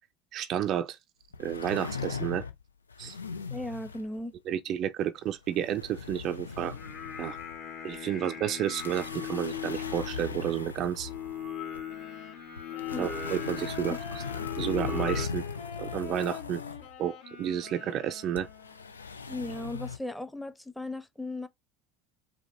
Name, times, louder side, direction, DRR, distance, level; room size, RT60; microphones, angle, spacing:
voice 1, 0.3-1.0 1.4-2.4 3.0-3.2 4.5-6.8 7.2-7.4 7.8-11.1 13.0-14.2 14.6-15.4 15.8-16.6 17.0-18.5, right 10 dB, 45° right, 0.4 m, -31 dB
sound 1, 1.3-2.6 2.9-4.2 5.3-7.6 7.9-8.0 8.7-11.8 12.6-16.9 18.4-20.0, left 5 dB, 85° left, 0.5 m, -39 dB
voice 2, 3.5-4.3 12.9-13.1 13.9-14.0 19.3-21.5, left 2 dB, 5° left, 0.8 m, -36 dB
Singing, 6.5-15.3, left 7 dB, 45° left, 1.4 m, -39 dB
Wind instrument woodwind instrument, 11.9-19.0, left 8 dB, 65° left, 1.4 m, -45 dB
4.8 x 2.1 x 4.3 m
figure-of-eight pair, 75°, 0 cm